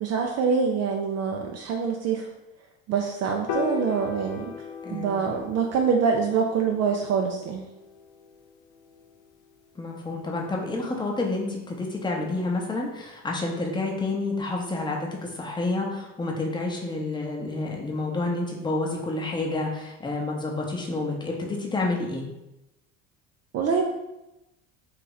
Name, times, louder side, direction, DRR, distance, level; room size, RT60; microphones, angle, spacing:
voice 1, 0.0-2.2 2.9-4.5 4.9-7.6 23.5-23.8, right 6 dB, 40° right, 2 dB, 0.4 m, -25 dB
Piano, 3.5-9.8, left 6 dB, 50° left, 0.5 m, -38 dB
voice 2, 9.8-22.2, left 2 dB, 10° left, -1 dB, 0.8 m, -29 dB
2.8 x 2.7 x 3.9 m, 0.94 s
hypercardioid pair, 75°, 40 cm